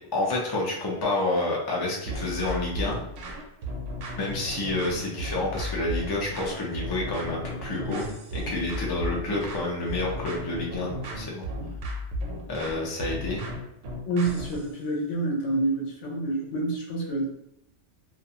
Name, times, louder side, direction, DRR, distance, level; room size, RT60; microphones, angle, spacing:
voice 1, 0.1-3.0 4.2-8.0 8.3-11.5 12.5-13.5, left 2 dB, 30° left, -3 dB, 0.4 m, -29 dB
sound 1, 2.1-14.7, equal, 65° right, 0.8 m, -35 dB
voice 2, 14.1-17.3, right 2 dB, 75° left, -1 dB, 1.0 m, -27 dB
2.4 x 2.3 x 2.7 m, 0.78 s
omnidirectional pair, 1.2 m